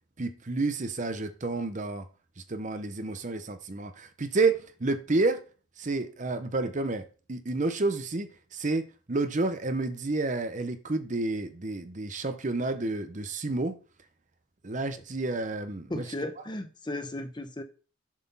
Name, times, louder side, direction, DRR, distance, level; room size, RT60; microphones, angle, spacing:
voice 1, 0.2-2.1 2.5-5.4 5.8-13.8 14.6-16.0, right 3 dB, 35° right, 0.7 m, -30 dB
voice 2, 15.9-17.6, left 1 dB, 20° left, 0.7 m, -35 dB
7.3 x 4.1 x 5.5 m
head